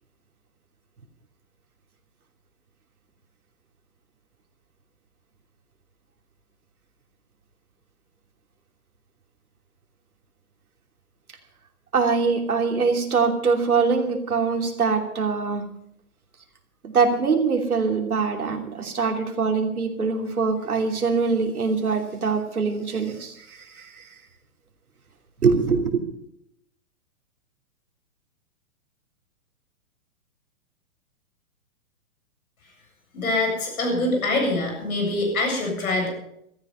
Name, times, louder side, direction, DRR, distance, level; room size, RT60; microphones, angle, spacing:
voice 1, 11.9-15.6 16.8-24.1 25.4-26.0, right 5 dB, 90° right, 3 dB, 3.0 m, -23 dB
voice 2, 33.1-36.1, left 2 dB, 75° left, 2 dB, 7.9 m, -24 dB
15.5 x 14.0 x 5.6 m, 0.76 s
hypercardioid pair, 130°, 43 cm